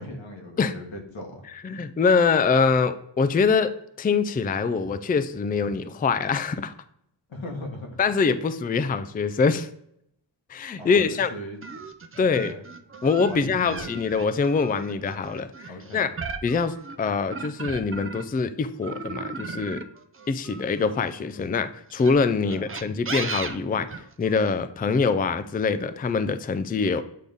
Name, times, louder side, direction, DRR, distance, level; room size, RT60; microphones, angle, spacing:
voice 1, 0.0-1.8 7.3-8.0 10.8-11.9 12.2-12.6 13.2-13.9 15.7-16.1 22.4-22.6, left 1 dB, 90° left, 1 dB, 1.6 m, -39 dB
voice 2, 1.6-3.7 4.0-6.7 8.0-9.7 10.5-11.3 12.2-12.5 13.0-16.1 16.4-19.8 20.3-23.9 24.2-27.0, left 5 dB, 20° left, 11 dB, 0.4 m, -24 dB
sound 1, 11.6-18.4 18.8-21.2 21.9-24.5, right 4 dB, 30° right, 0.6 m, -36 dB
8.4 x 3.9 x 3.5 m, 0.74 s
wide cardioid pair, 80°, 45 cm